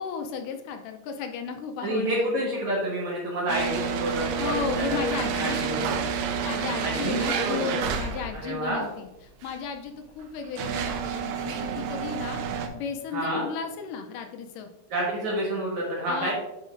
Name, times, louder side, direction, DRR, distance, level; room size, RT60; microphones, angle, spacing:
voice 1, 0.0-2.3 4.4-6.1 6.4-9.1 9.4-14.7 16.1-16.3, left 6 dB, 80° left, 5 dB, 2.1 m, -34 dB
voice 2, 1.8-5.9 6.8-7.8 8.3-8.8 13.1-13.4 14.9-16.3, right 1 dB, 60° right, -5 dB, 2.6 m, -29 dB
sound 1, 3.5-8.5 9.4-9.5 10.2-12.7, right 6 dB, 80° right, 1.7 m, -29 dB
10.5 x 5.2 x 2.5 m, 0.96 s
omnidirectional pair, 4.0 m